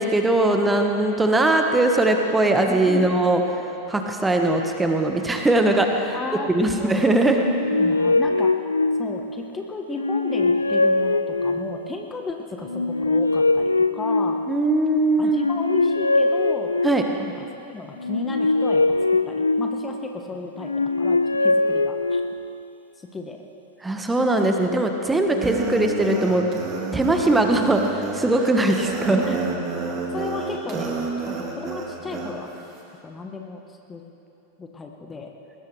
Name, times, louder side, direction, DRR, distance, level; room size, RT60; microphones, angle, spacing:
voice 1, 0.0-3.4 3.9-6.1 6.5-7.4 14.5-15.5 16.8-17.0 23.8-26.4 26.9-29.3, right 2 dB, 10° right, 3 dB, 1.3 m, -20 dB
voice 2, 2.6-3.1 6.1-7.0 7.7-8.5 9.0-14.5 15.2-16.7 17.2-18.8 19.3-20.7 21.0-22.2 23.0-23.4 29.2-29.5 30.1-30.9 31.3-32.5 33.0-34.0 34.6-35.3, left 3 dB, 15° left, 3 dB, 1.2 m, -34 dB
sound 1, 7.3-9.4 9.9-11.9 12.6-14.8 15.2-17.3 18.0-20.1 20.6-22.6, left 2 dB, 80° left, 0.3 m, -22 dB
sound 2, 25.3-32.3, right 3 dB, 30° right, 2.5 m, -30 dB
21.5 x 19.5 x 3.3 m, 2.9 s
figure-of-eight pair, 90°, 0 cm